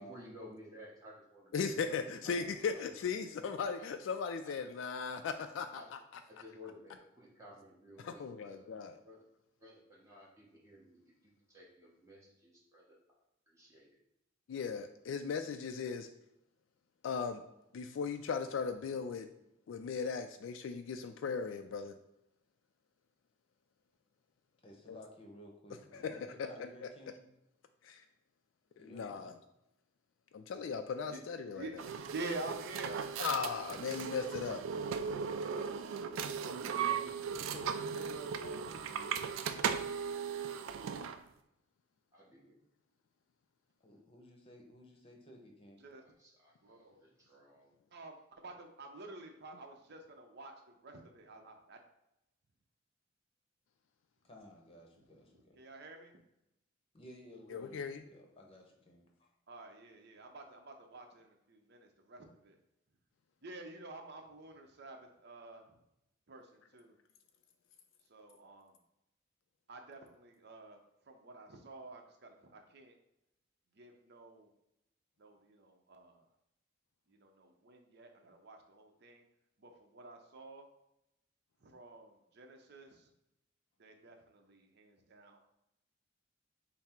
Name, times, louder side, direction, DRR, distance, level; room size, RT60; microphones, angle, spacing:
voice 1, 0.0-1.5 1.9-2.0 2.2-2.4 2.7-3.1 4.4-4.5 5.7-5.9 6.2-8.7 9.0-9.2 9.6-11.1 11.5-13.0 13.5-13.9 42.1-42.5 46.0-47.7, left 1 dB, 15° right, -5 dB, 1.0 m, -55 dB
voice 2, 1.5-5.8 6.1-6.2 8.0-9.0 14.5-16.1 17.0-17.4 17.7-19.3 19.7-22.0 24.9-25.0 25.9-26.3 27.8-28.0 28.8-29.3 30.3-31.7 33.2-34.6 57.5-58.0, left 5 dB, 70° left, 8 dB, 0.3 m, -37 dB
voice 3, 2.2-2.6 24.6-27.2 28.8-29.3 36.1-39.2 43.8-45.8 54.2-55.6 56.9-59.3, left 1 dB, 30° left, 1 dB, 0.8 m, -54 dB
sound 1, 31.8-41.2, right 6 dB, 80° right, 0.3 m, -37 dB
voice 4, 32.1-33.3 45.8-46.0 46.6-47.0 47.9-51.8 55.0-56.2 59.5-62.6 63.4-65.8 66.3-67.0 68.1-68.7 69.7-70.8 71.1-72.9 73.7-74.5 75.2-76.2 77.1-79.2 79.6-80.7 81.6-83.1 83.8-85.4, right 2 dB, 55° right, 3 dB, 0.7 m, -49 dB
5.7 x 2.0 x 4.3 m, 0.86 s
head